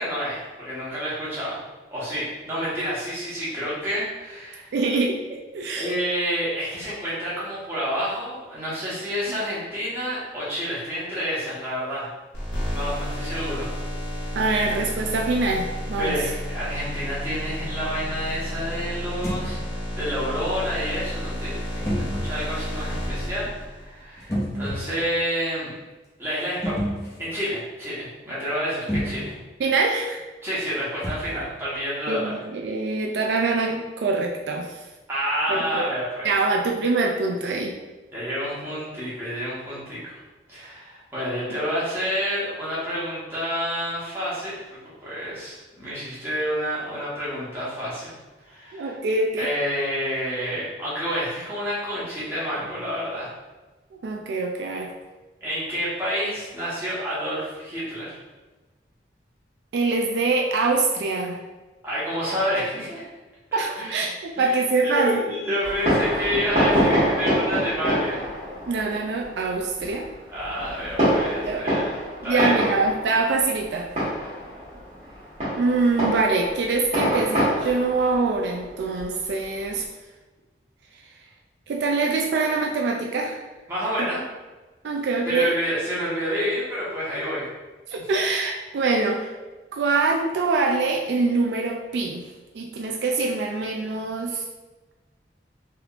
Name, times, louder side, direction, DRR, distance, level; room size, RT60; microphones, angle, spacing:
voice 1, 0.0-1.6 1.9-4.7 5.8-12.1 12.7-13.7 16.0-25.8 26.2-26.9 27.2-29.3 30.4-32.4 35.1-36.3 38.1-40.1 40.5-44.6 45.0-48.1 48.4-49.0 49.3-53.3 55.4-58.2 61.8-63.0 63.5-64.0 64.4-68.2 70.3-72.0 72.2-72.5 83.7-84.2 85.2-87.4 88.0-88.1, equal, 15° right, -9 dB, 1.1 m, -29 dB
voice 2, 4.7-5.9 9.3-9.4 14.4-16.1 29.6-30.2 32.1-34.8 35.5-35.9 36.2-37.7 45.9-46.0 48.7-49.5 54.0-54.9 59.7-61.4 63.5-65.2 68.7-70.1 71.5-71.8 72.2-73.9 75.6-79.8 81.7-83.4 84.8-85.5 87.9-89.3 89.7-92.2 92.5-94.4, right 3 dB, 75° right, 1 dB, 0.3 m, -24 dB
sound 1, 12.3-24.0, equal, 80° left, 1.3 m, -31 dB
sound 2, 19.2-19.5 21.8-22.4 24.2-25.1 26.6-27.2 28.9-29.3 31.0-31.5, equal, 15° left, 0.8 m, -29 dB
Fireworks, 65.6-79.8, equal, 40° right, 1.4 m, -26 dB
3.4 x 3.0 x 2.4 m, 1.2 s
head